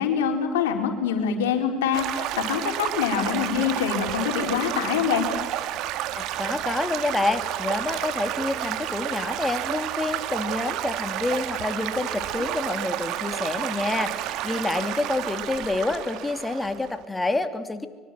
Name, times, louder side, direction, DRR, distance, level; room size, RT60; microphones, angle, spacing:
voice 1, 0.0-5.3, left 7 dB, 85° left, 4 dB, 4.1 m, -25 dB
Stream / Gurgling / Trickle dribble, 1.9-17.0, right 12 dB, 65° right, 1.9 m, -30 dB
voice 2, 6.2-17.9, left 2 dB, 15° left, 8 dB, 2.9 m, -28 dB
25.0 x 24.0 x 7.7 m, 1.4 s
hypercardioid pair, 75°, 0 cm